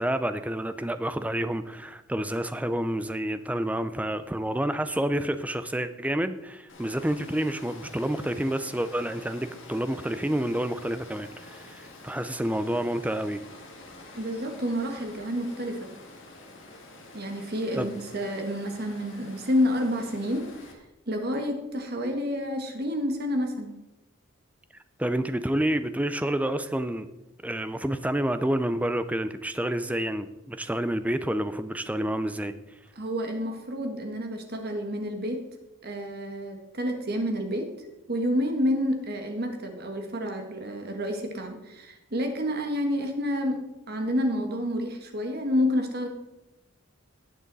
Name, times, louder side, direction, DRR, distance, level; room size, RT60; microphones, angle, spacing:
voice 1, 0.0-13.4 17.7-18.0 25.0-27.1 27.4-32.5, right 1 dB, 5° right, 11 dB, 0.5 m, -29 dB
Water, 6.7-20.7, left 2 dB, 55° left, 2.2 m, -47 dB
voice 2, 14.1-15.9 17.1-20.5 21.1-23.7 32.9-35.4 35.8-43.6 43.9-46.1, equal, 45° right, 4 dB, 1.6 m, -29 dB
18.0 x 6.4 x 4.0 m, 0.99 s
head